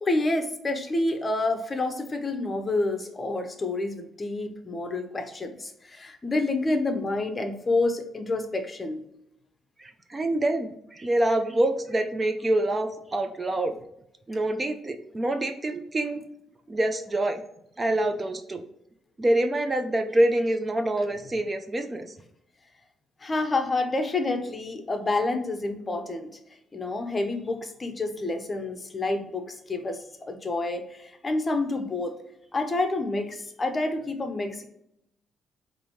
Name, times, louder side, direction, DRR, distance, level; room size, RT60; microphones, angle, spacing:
voice 1, 0.0-9.0 23.2-26.4 26.7-32.2 32.5-34.6, left 2 dB, 30° left, 6 dB, 0.7 m, -28 dB
voice 2, 9.8-13.8 14.3-16.2 16.7-17.4 17.8-18.6 19.2-22.1, right 1 dB, 25° right, 7 dB, 0.4 m, -26 dB
4.8 x 2.6 x 3.0 m, 0.78 s
cardioid pair, 90°, 0 cm